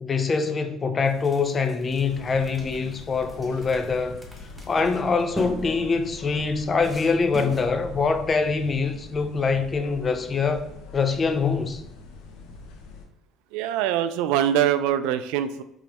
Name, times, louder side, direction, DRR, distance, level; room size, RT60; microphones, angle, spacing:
voice 1, 0.0-4.2 4.7-10.7 10.9-11.8, left 4 dB, 30° left, 0.5 m, -24 dB
sound 1, 1.1-7.7, right 1 dB, 5° right, 0.8 m, -41 dB
sound 2, 1.9-13.1, left 4 dB, 85° left, 0.7 m, -42 dB
voice 2, 13.5-15.6, right 10 dB, 90° right, 0.3 m, -23 dB
5.4 x 3.1 x 2.9 m
cardioid pair, 120°, 0 cm